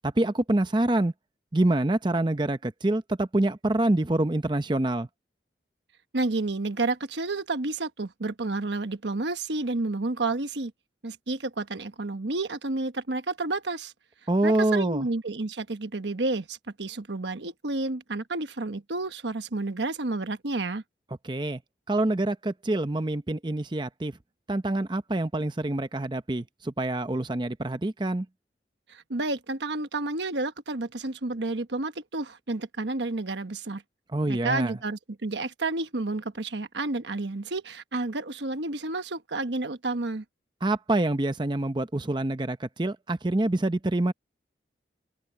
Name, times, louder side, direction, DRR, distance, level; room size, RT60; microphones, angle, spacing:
voice 1, 0.0-1.1 1.5-5.1 14.3-15.1 21.2-21.6 21.9-24.2 24.5-28.3 34.1-34.8 40.6-44.1, right 1 dB, 25° right, 0.7 m, -26 dB
voice 2, 6.1-10.7 11.0-13.9 14.4-20.8 28.9-33.8 34.3-40.2, right 2 dB, 80° right, 1.2 m, -30 dB
head